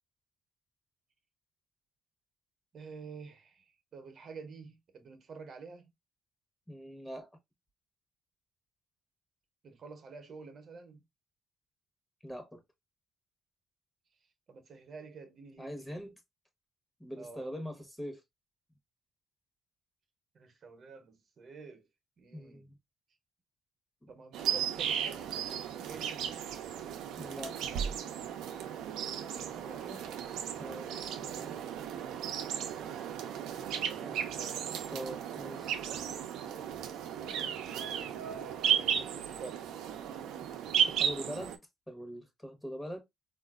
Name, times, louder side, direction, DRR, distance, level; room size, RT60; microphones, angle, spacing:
voice 1, 2.7-5.9 9.6-11.0 14.5-16.0 17.2-17.5 20.3-21.9 22.2-22.7 24.1-26.6 29.3-30.1 33.6-35.0 37.1-39.8, right 4 dB, 55° right, 0.7 m, -50 dB
voice 2, 6.7-7.3 12.2-12.6 15.6-16.2 17.0-18.2 22.3-22.8 24.0-24.1 27.2-27.6 30.6-31.0 31.2-31.5 34.0-34.2 34.9-35.8 40.9-41.5 41.9-43.0, equal, 10° left, 1.0 m, -42 dB
sound 1, 24.3-41.6, right 9 dB, 90° right, 0.5 m, -35 dB
3.7 x 2.4 x 2.3 m
cardioid pair, 90°, 0 cm